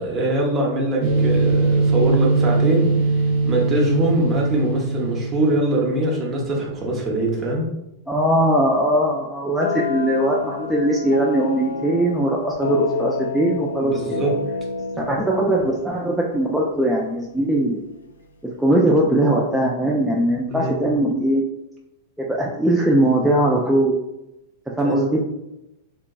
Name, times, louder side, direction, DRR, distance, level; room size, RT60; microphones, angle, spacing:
voice 1, 0.0-2.9 3.4-7.7 13.8-14.3 20.5-20.9 24.8-25.0, right 1 dB, 25° right, -1 dB, 0.9 m, -23 dB
sound 1, 1.0-5.9, right 3 dB, 55° right, 0.7 m, -20 dB
voice 2, 8.1-14.2 15.0-17.8 18.4-21.4 22.2-23.9 24.8-25.2, right 1 dB, 5° right, -4 dB, 0.4 m, -20 dB
sound 2, 9.6-17.3, left 5 dB, 75° left, 0.3 m, -29 dB
3.5 x 2.8 x 2.3 m, 0.89 s
figure-of-eight pair, 95°, 0 cm